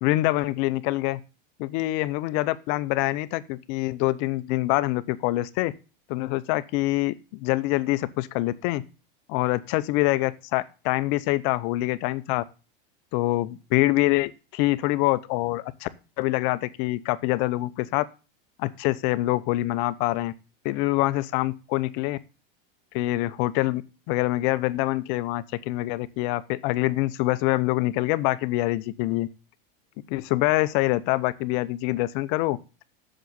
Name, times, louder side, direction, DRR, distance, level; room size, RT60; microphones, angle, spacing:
voice 1, 0.0-1.2 1.6-5.7 6.1-8.8 9.3-12.4 13.1-15.9 16.2-18.1 18.6-20.3 20.6-22.2 22.9-23.8 24.1-29.3 30.1-32.6, left 18 dB, 55° left, 16 dB, 0.8 m, -25 dB
7.8 x 7.1 x 7.9 m, 0.33 s
supercardioid pair, 130°, 29 cm